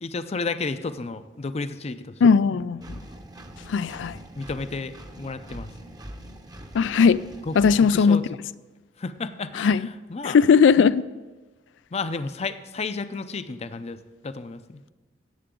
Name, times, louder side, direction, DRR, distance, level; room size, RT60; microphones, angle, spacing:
voice 1, 0.0-2.3 4.3-5.7 7.5-8.2 9.0-10.4 11.9-14.0 14.2-14.8, left 3 dB, 35° left, 0.5 m, -32 dB
voice 2, 2.2-2.8 3.7-4.2 6.7-7.2 7.6-8.2 9.6-9.9 10.2-11.0, left 6 dB, 85° left, 0.4 m, -18 dB
Engine, 2.8-8.0, right 1 dB, 20° right, 0.8 m, -42 dB
17.0 x 7.9 x 3.8 m
head